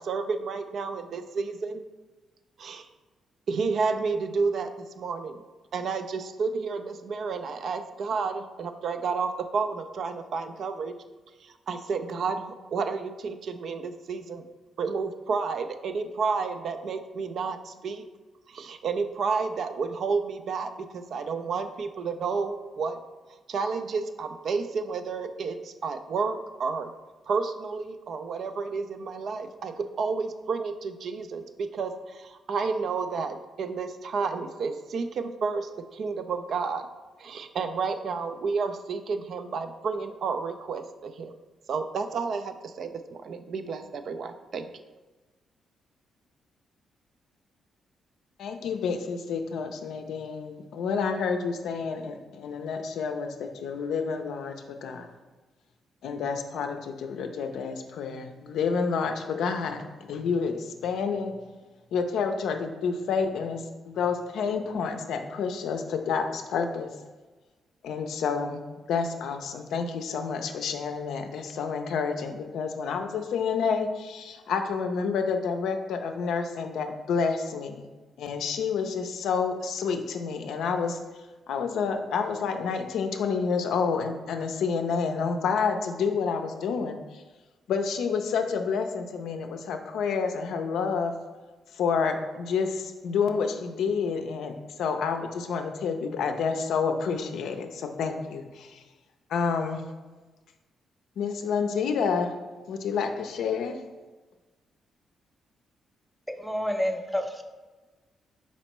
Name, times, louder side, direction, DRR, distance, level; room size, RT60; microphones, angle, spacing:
voice 1, 0.0-1.8 2.6-2.9 3.5-5.4 5.7-10.9 11.4-14.5 14.8-18.0 18.5-23.0 23.5-26.9 27.3-36.9 37.2-41.3 41.7-44.7, right 5 dB, 65° right, 8 dB, 0.3 m, -31 dB
voice 2, 48.4-54.5 54.8-55.1 56.0-61.3 61.9-66.9 67.8-68.6 68.9-77.8 78.2-81.0 81.5-87.2 87.7-91.1 91.7-98.8 99.3-99.8 101.2-102.3 102.7-103.8, left 5 dB, 80° left, 6 dB, 0.4 m, -29 dB
voice 3, 106.3-107.4, equal, ahead, 5 dB, 0.5 m, -29 dB
4.3 x 4.1 x 3.0 m, 1.2 s
cardioid pair, 80°, 0 cm